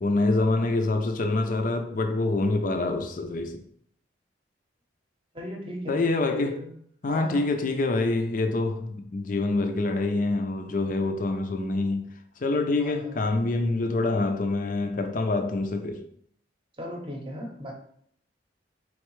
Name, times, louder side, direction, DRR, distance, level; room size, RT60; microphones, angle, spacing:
voice 1, 0.0-3.6 5.9-6.6 7.0-12.1 12.4-16.0, left 2 dB, 45° left, 0.5 m, -26 dB
voice 2, 5.3-6.7 7.1-7.5 12.8-13.2 16.8-17.7, equal, 25° right, 0.8 m, -38 dB
4.4 x 3.2 x 3.1 m
head